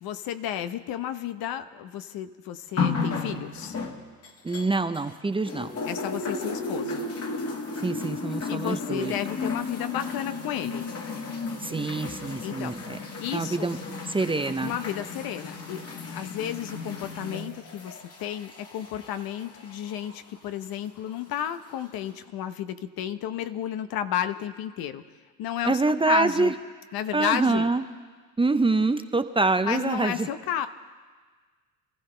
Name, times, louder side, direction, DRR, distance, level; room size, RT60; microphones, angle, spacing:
voice 1, 0.0-3.8 5.8-7.0 8.5-10.9 12.4-12.8 13.2-13.7 14.6-25.0 25.4-26.5 26.9-27.7 29.6-30.7, left 10 dB, 65° left, 11 dB, 0.9 m, -32 dB
sound 1, 2.8-5.1 5.5-20.2 21.1-21.2, left 4 dB, 40° left, 2.0 m, -34 dB
voice 2, 4.4-5.8 7.8-9.1 11.6-13.0 13.3-13.8 14.1-14.7 25.7-26.5 27.1-27.8 28.4-30.3, right 3 dB, 15° right, 9 dB, 0.7 m, -25 dB
26.5 x 14.5 x 3.4 m, 1.5 s
supercardioid pair, 80°, 38 cm